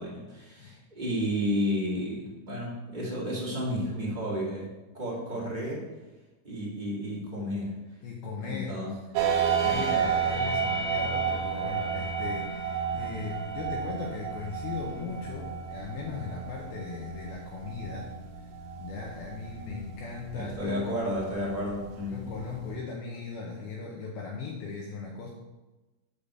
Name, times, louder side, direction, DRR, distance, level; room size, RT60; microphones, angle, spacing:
voice 1, 0.0-4.7 4.9-5.9 6.4-7.8 8.4-8.9 9.6-10.1 20.3-22.3, equal, 20° right, -7 dB, 1.3 m, -32 dB
voice 2, 8.0-8.8 9.6-18.1 18.4-18.5 18.8-21.0 22.1-25.3, left 4 dB, 80° left, -1 dB, 2.2 m, -38 dB
sound 1, 9.2-22.8, right 6 dB, 75° right, 3.0 m, -32 dB
6.8 x 5.2 x 6.9 m, 1.1 s
omnidirectional pair, 5.5 m